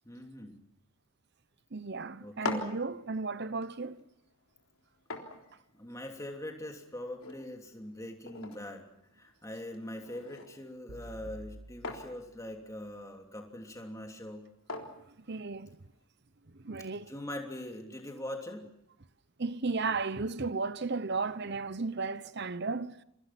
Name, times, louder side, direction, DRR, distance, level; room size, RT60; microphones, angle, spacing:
voice 1, 0.0-0.6 2.2-2.7 5.7-8.9 9.1-14.5 16.9-18.7, left 1 dB, 15° left, 3.0 m, -42 dB
voice 2, 1.7-4.0 15.1-15.8 16.5-17.1 19.4-23.0, right 4 dB, 50° right, 0.9 m, -34 dB
sound 1, 2.2-16.0, left 3 dB, 70° left, 3.7 m, -46 dB
sound 2, 10.9-13.0, right 1 dB, 85° right, 1.8 m, -50 dB
29.0 x 24.0 x 6.0 m
head